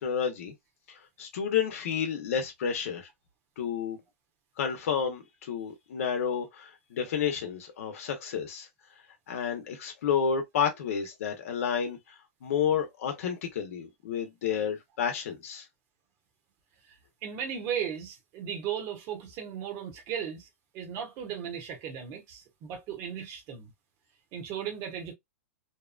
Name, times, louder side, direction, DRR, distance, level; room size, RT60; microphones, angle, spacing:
voice 1, 0.0-0.5 1.2-3.1 3.6-4.0 4.6-8.7 9.3-12.0 12.4-15.6, left 7 dB, 65° left, 0.8 m, -30 dB
voice 2, 17.2-20.5 20.7-23.7 24.3-25.1, right 8 dB, 35° right, 1.0 m, -36 dB
2.9 x 2.2 x 2.3 m
supercardioid pair, 155°, 8 cm